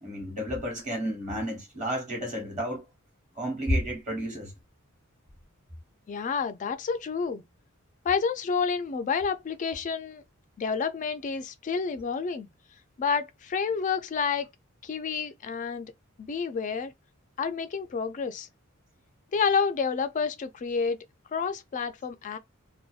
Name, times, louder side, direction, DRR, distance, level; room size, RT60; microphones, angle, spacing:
voice 1, 0.0-2.8 3.3-4.5, equal, 35° right, 1.1 m, -31 dB
voice 2, 6.1-7.4 8.0-10.2 10.6-12.5 13.0-14.5 14.8-15.9 16.2-16.9 17.4-18.5 19.3-21.0 21.3-22.4, left 5 dB, 35° left, 0.3 m, -29 dB
2.6 x 2.2 x 2.3 m
head